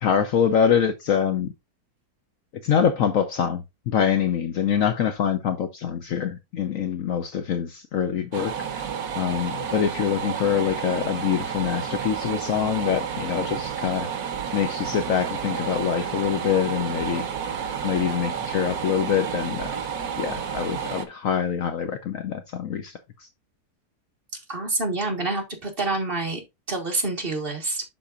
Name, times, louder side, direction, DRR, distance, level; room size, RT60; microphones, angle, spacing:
voice 1, 0.0-1.5 2.6-8.8 9.1-14.1 14.5-17.3 17.8-19.8 20.2-22.9, left 8 dB, 60° left, 1.0 m, -25 dB
sound 1, 8.3-21.0, right 7 dB, 70° right, 1.4 m, -31 dB
voice 2, 24.5-26.4 26.7-27.8, right 2 dB, 35° right, 1.8 m, -27 dB
11.5 x 4.0 x 2.5 m
omnidirectional pair, 1.7 m